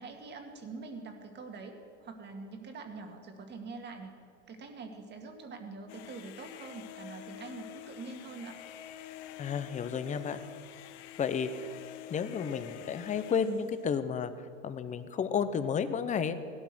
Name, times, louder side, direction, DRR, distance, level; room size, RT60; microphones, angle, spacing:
voice 1, 0.0-4.1 4.5-8.6, right 4 dB, 30° right, 5 dB, 2.1 m, -44 dB
sound 1, 5.9-13.9, left 12 dB, 65° left, 0.8 m, -47 dB
voice 2, 9.4-10.4 11.2-11.7 12.1-14.3 14.6-16.4, left 7 dB, 20° left, 11 dB, 0.9 m, -32 dB
17.0 x 12.5 x 6.3 m, 2.6 s
hypercardioid pair, 115°, 37 cm